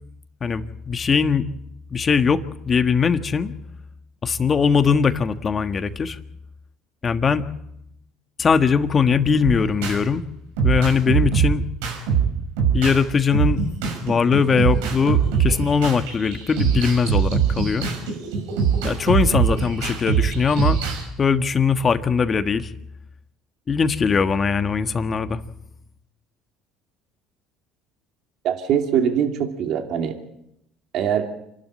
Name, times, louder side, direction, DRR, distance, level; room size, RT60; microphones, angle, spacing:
voice 1, 0.4-1.5 1.9-3.5 4.2-6.2 7.0-7.4 8.4-10.2 10.6-11.6 12.7-13.6 14.0-17.9 18.8-20.8 21.2-22.7 23.7-25.4, left 6 dB, 35° left, 9 dB, 1.5 m, -20 dB
sound 1, 9.4-10.0 10.6-13.0 13.3-21.0, right 7 dB, 85° right, 6.2 m, -22 dB
voice 2, 28.4-30.2 30.9-31.3, right 8 dB, 65° right, 4 dB, 2.6 m, -22 dB
27.5 x 12.5 x 8.8 m, 0.80 s
supercardioid pair, 85°, 0 cm